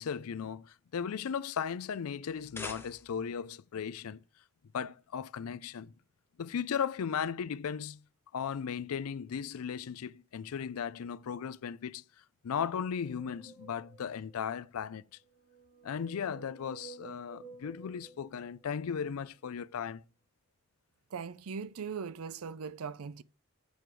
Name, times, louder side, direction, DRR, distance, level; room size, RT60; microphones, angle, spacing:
voice 1, 0.0-4.2 4.7-5.9 6.4-8.0 8.3-12.0 12.4-15.1 15.8-20.0, left 7 dB, 85° left, 0.4 m, -36 dB
sound 1, 2.2-3.4, left 3 dB, 10° left, 0.7 m, -44 dB
sound 2, 12.8-14.4 15.2-19.1, right 6 dB, 30° right, 1.1 m, -53 dB
voice 2, 21.1-23.2, right 6 dB, 85° right, 0.5 m, -39 dB
7.9 x 4.6 x 6.7 m
head